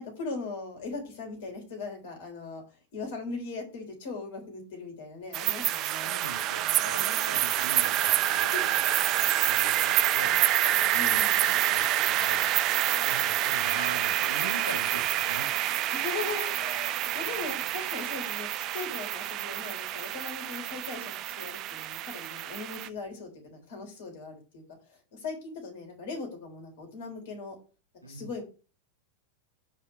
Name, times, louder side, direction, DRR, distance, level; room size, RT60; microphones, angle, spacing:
voice 1, 0.0-2.6 2.9-6.1 6.8-7.4 8.4-8.6 10.9-11.4 15.9-24.6 24.9-27.6 28.0-28.4, left 4 dB, 55° left, 3 dB, 3.7 m, -39 dB
sound 1, 5.3-22.9, right 13 dB, 35° right, 0.4 m, -27 dB
voice 2, 6.0-9.0 9.4-10.4 10.9-12.5 13.0-15.5 28.0-28.4, right 1 dB, 90° right, 6 dB, 1.3 m, -42 dB
5.7 x 4.9 x 6.2 m, 0.35 s
figure-of-eight pair, 90°, 0 cm